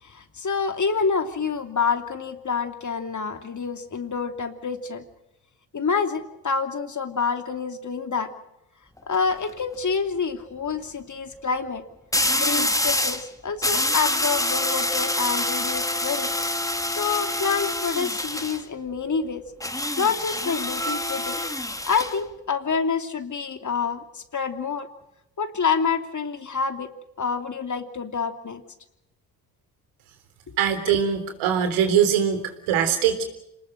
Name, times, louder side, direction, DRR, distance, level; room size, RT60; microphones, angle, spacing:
voice 1, 0.0-5.0 5.7-8.3 9.1-11.8 12.4-16.3 16.9-19.4 20.0-21.4 21.9-24.9 25.4-26.9 27.2-28.6, left 5 dB, 35° left, 7 dB, 3.0 m, -27 dB
sound 1, 9.0-9.3 12.1-13.3 13.6-18.6 19.6-22.2, left 1 dB, 5° left, 2.0 m, -26 dB
voice 2, 30.6-33.2, right 8 dB, 75° right, 7 dB, 3.9 m, -22 dB
27.5 x 20.0 x 6.7 m, 0.86 s
hypercardioid pair, 60°, 48 cm